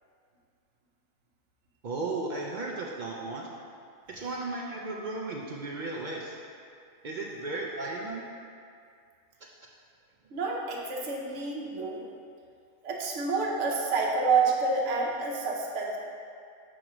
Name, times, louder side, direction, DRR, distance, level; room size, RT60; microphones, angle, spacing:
voice 1, 1.8-3.5 4.1-6.4 7.0-8.2, right 2 dB, 55° right, -2 dB, 0.5 m, -35 dB
voice 2, 10.3-12.1 12.8-16.0, right 4 dB, 75° right, -2 dB, 1.1 m, -28 dB
6.2 x 6.0 x 3.0 m, 2.3 s
omnidirectional pair, 1.3 m